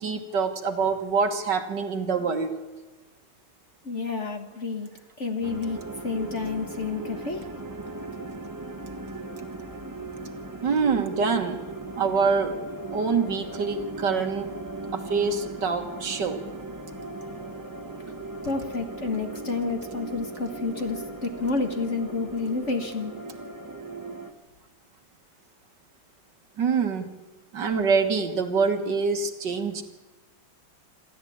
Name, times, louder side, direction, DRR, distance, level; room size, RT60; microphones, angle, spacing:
voice 1, 0.0-2.5 10.6-11.6 12.0-12.6 12.9-14.5 14.9-16.4 26.6-27.0 27.5-29.8, right 5 dB, 60° right, 7 dB, 2.1 m, -25 dB
voice 2, 3.8-4.9 5.2-5.8 6.0-7.5 18.4-23.1, left 4 dB, 35° left, 6 dB, 1.6 m, -30 dB
sound 1, 5.4-24.3, right 2 dB, 15° right, 0.8 m, -38 dB
28.0 x 13.0 x 8.6 m, 1.2 s
omnidirectional pair, 2.3 m